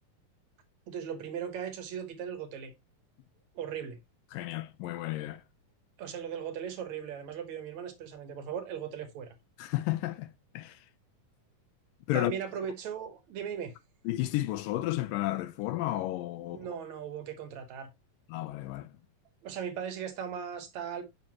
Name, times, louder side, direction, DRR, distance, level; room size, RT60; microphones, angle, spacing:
voice 1, 0.9-2.7 3.6-4.0 6.0-9.4 12.1-13.7 16.4-17.9 19.4-21.1, right 8 dB, 65° right, 2.2 m, -38 dB
voice 2, 4.3-5.4 9.6-10.8 12.1-12.3 14.1-16.7 18.3-19.0, left 16 dB, 85° left, 2.3 m, -32 dB
7.8 x 5.7 x 2.8 m
omnidirectional pair, 4.0 m